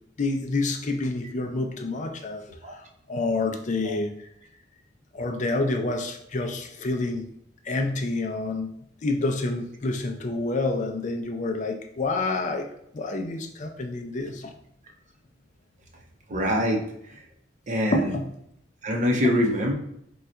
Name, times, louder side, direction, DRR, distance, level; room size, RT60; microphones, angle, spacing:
voice 1, 0.2-2.4 2.8-4.1 5.1-7.3 7.6-8.7 9.0-12.7 12.9-14.5 17.9-18.3, left 2 dB, 40° left, 4 dB, 0.4 m, -28 dB
voice 2, 16.3-16.8 17.7-18.1 18.8-19.7, equal, 45° right, 1 dB, 0.7 m, -24 dB
3.9 x 2.3 x 4.3 m, 0.72 s
head